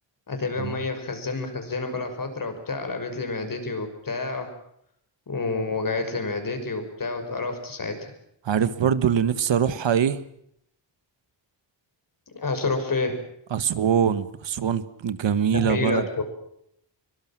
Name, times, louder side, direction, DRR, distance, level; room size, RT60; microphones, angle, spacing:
voice 1, 0.3-4.5 5.3-8.1 12.3-13.2 15.5-16.2, left 3 dB, 50° left, 6.3 m, -29 dB
voice 2, 8.4-10.2 13.5-16.0, right 8 dB, 80° right, 1.5 m, -23 dB
24.0 x 23.5 x 7.6 m
wide cardioid pair, 115°, 44 cm